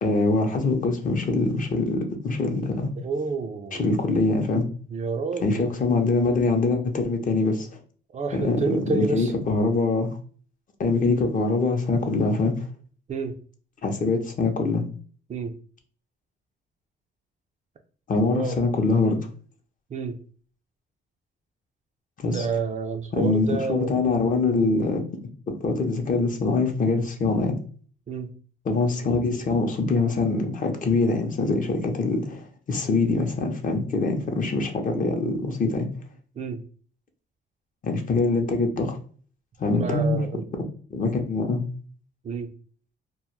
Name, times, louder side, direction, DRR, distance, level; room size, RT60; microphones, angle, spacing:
voice 1, 0.0-2.9 3.7-4.7 5.4-7.8 8.3-10.2 10.8-12.7 13.8-14.8 18.1-19.2 22.2-22.5 23.1-25.0 25.5-27.6 28.6-35.9 37.8-39.0 39.6-40.2 40.9-41.8, left 3 dB, 40° left, 0.6 m, -24 dB
voice 2, 3.0-3.8 4.9-5.6 8.1-9.3 13.1-13.4 15.3-15.5 18.2-18.6 19.9-20.2 22.2-23.9 28.1-28.3 36.4-36.6 39.7-40.4 42.2-42.5, right 4 dB, 35° right, 0.4 m, -29 dB
2.2 x 2.0 x 3.0 m
cardioid pair, 90°, 20 cm